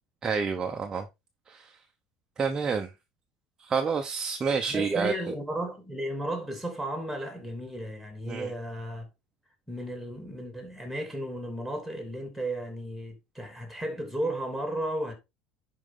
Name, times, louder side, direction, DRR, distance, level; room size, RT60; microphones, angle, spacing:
voice 1, 0.2-1.0 1.5-1.7 2.4-2.9 3.6-5.1 8.3-8.5, right 5 dB, 20° right, 0.9 m, -28 dB
voice 2, 4.7-9.1 9.7-15.1, right 1 dB, ahead, 2.9 m, -34 dB
10.5 x 4.9 x 3.8 m
cardioid pair, 160°, 3 cm